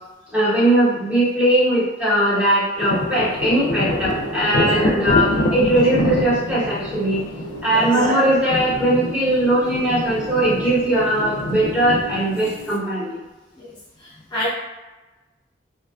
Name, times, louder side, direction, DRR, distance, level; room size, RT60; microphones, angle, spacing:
voice 1, 0.3-7.3 7.6-13.2, right 1 dB, 5° right, -10 dB, 0.9 m, -19 dB
sound 1, 2.7-12.6, right 2 dB, 50° right, 0.6 m, -38 dB
sound 2, 2.8-12.8, left 1 dB, 85° left, 0.4 m, -26 dB
voice 2, 7.7-8.1 13.5-13.7 14.0-14.5, equal, 25° left, -8 dB, 0.5 m, -29 dB
2.8 x 2.3 x 2.3 m, 1.1 s
head